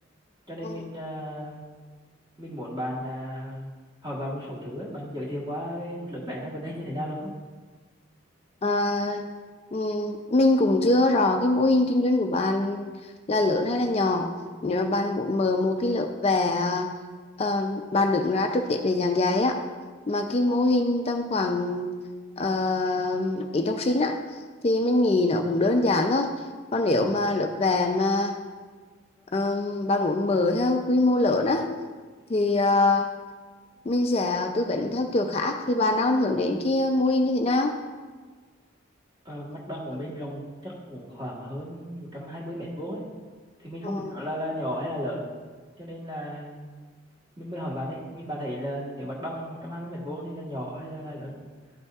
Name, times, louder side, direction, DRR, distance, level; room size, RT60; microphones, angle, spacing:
voice 1, 0.5-1.6 2.4-3.7 4.0-7.3 39.2-43.0 43.6-45.2 45.8-46.7 47.4-51.3, equal, 20° right, -5 dB, 1.3 m, -34 dB
voice 2, 8.6-9.3 9.7-12.9 13.3-14.3 14.6-16.9 17.4-19.6 20.1-21.9 22.4-24.2 24.6-26.3 26.7-28.4 29.3-31.7 32.3-33.1 33.9-37.8 43.8-44.1, left 2 dB, 30° left, 5 dB, 0.4 m, -23 dB
12.5 x 5.3 x 2.4 m, 1.4 s
head